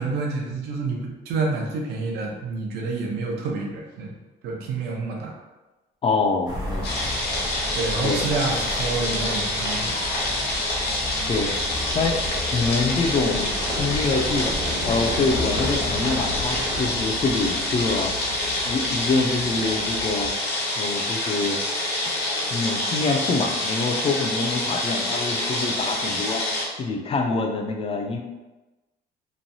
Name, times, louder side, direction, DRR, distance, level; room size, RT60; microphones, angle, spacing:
voice 1, 0.0-4.2 4.4-5.3 7.7-10.1, right 3 dB, 75° right, -1 dB, 0.7 m, -28 dB
voice 2, 6.0-7.0 8.0-8.2 11.2-11.5 11.9-12.2 12.5-14.6 14.8-18.1 18.6-20.3 20.8-21.6 22.5-26.4 26.8-28.2, left 3 dB, 35° left, 3 dB, 0.4 m, -25 dB
sound 1, 6.5-17.6, left 1 dB, 25° right, 0.7 m, -35 dB
sound 2, 6.8-26.7, left 1 dB, 70° left, 1.0 m, -27 dB
Livestock farm animals working animals, 11.6-20.3, left 1 dB, 55° right, 1.2 m, -33 dB
3.1 x 2.2 x 2.6 m, 1.1 s
cardioid pair, 110°, 17 cm